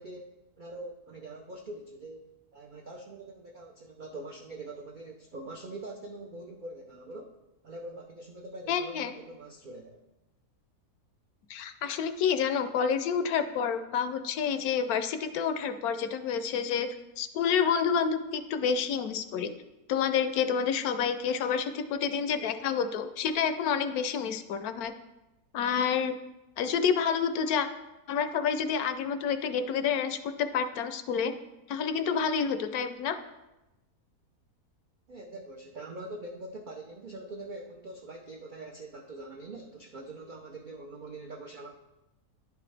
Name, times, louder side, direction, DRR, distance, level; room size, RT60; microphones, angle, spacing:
voice 1, 0.0-2.2 2.5-7.4 7.6-10.0 35.1-41.7, right 2 dB, 75° right, 1 dB, 0.4 m, -43 dB
voice 2, 8.7-9.1 11.5-16.9 17.2-19.5 19.9-24.9 25.5-26.2 26.6-27.7 28.1-31.3 31.7-33.2, left 7 dB, 75° left, 9 dB, 1.0 m, -28 dB
10.5 x 4.8 x 3.3 m, 0.98 s
omnidirectional pair, 1.6 m